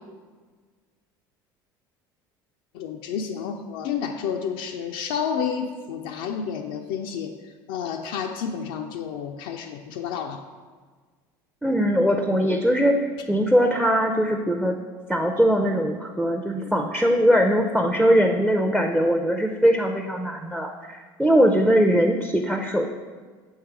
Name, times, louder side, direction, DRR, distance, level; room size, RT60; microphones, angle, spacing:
voice 1, 2.7-7.3 7.7-10.4, left 7 dB, 75° left, 3 dB, 0.4 m, -30 dB
voice 2, 11.6-14.8 15.1-22.9, equal, 5° right, 3 dB, 0.5 m, -21 dB
6.5 x 3.2 x 4.7 m, 1.5 s
hypercardioid pair, 80°, 12 cm